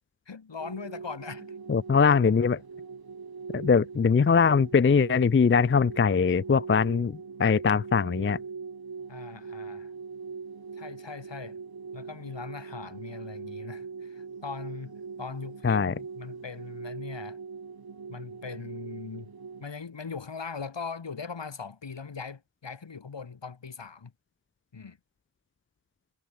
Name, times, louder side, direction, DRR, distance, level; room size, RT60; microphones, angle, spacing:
voice 1, 0.3-1.5 9.1-9.9 10.8-11.6 11.9-17.4 18.1-19.3 19.6-24.1 24.7-25.0, left 5 dB, 70° left, 4.2 m, -40 dB
sound 1, 0.6-19.7, right 5 dB, 55° right, 2.0 m, -41 dB
voice 2, 1.7-2.6 3.5-8.4 15.6-16.0, left 5 dB, 30° left, 0.5 m, -22 dB
wide cardioid pair, 60°, 44 cm